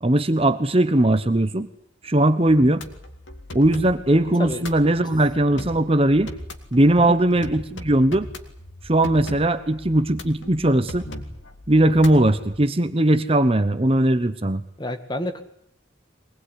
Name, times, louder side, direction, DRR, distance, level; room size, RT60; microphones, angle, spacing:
voice 1, 0.0-1.7 2.0-2.8 3.5-6.3 6.7-8.3 8.8-11.0 11.7-14.6, right 1 dB, 30° right, 11 dB, 1.0 m, -19 dB
sound 1, 2.5-12.6, left 1 dB, 85° left, 2.5 m, -39 dB
voice 2, 14.8-15.4, left 1 dB, 25° left, 7 dB, 1.9 m, -29 dB
23.5 x 19.5 x 9.9 m, 0.69 s
head